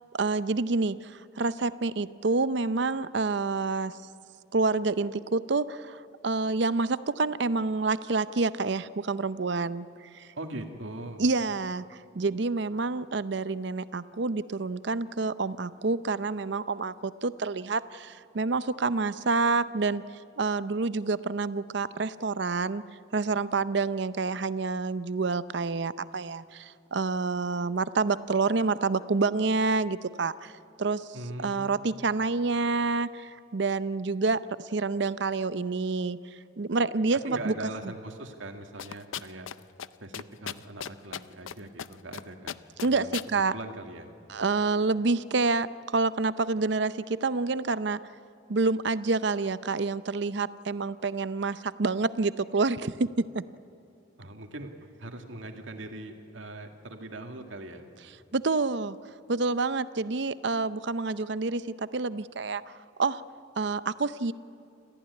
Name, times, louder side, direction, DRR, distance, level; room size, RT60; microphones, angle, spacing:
voice 1, 0.1-4.0 4.5-9.9 10.1-10.3 11.2-20.0 20.4-22.8 23.1-30.5 30.8-31.1 31.4-36.2 36.6-37.5 42.8-43.5 44.3-48.0 48.5-53.4 58.3-59.0 59.3-62.6 63.0-63.2 63.6-64.3, right 3 dB, 60° right, 15 dB, 0.6 m, -28 dB
voice 2, 10.4-11.2 31.1-31.8 37.2-39.5 40.0-44.1 54.2-54.7 55.0-57.9, right 2 dB, 80° right, 5 dB, 2.2 m, -41 dB
sound 1, 38.8-39.5 39.8-39.9 40.1-41.5 41.8-42.2 42.5-43.3, left 9 dB, 85° left, 0.5 m, -36 dB
28.0 x 15.0 x 9.8 m, 2.7 s
head